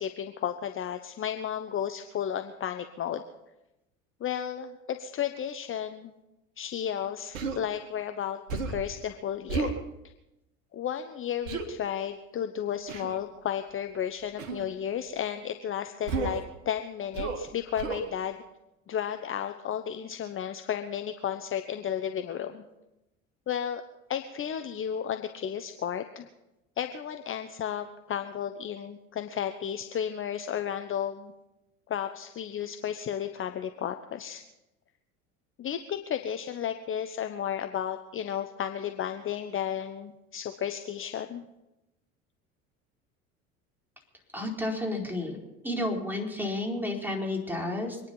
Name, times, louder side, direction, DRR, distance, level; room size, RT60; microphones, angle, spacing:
voice 1, 0.0-3.2 4.2-6.1 6.6-8.4 8.6-9.7 10.7-18.4 18.9-22.6 23.5-23.8 24.1-26.3 26.8-31.3 31.9-34.4 35.6-41.4, left 9 dB, 30° left, 8 dB, 1.0 m, -33 dB
Human voice, 7.3-7.6 8.5-8.9 9.5-9.8 11.5-11.7 12.9-13.2 14.4-14.7 16.1-16.5 17.1-17.5 17.8-18.1, right 4 dB, 65° right, 1.9 m, -32 dB
voice 2, 44.3-45.4 45.6-48.0, left 1 dB, 5° right, 0 dB, 4.6 m, -31 dB
25.0 x 10.0 x 5.6 m, 0.95 s
figure-of-eight pair, 65°, 41 cm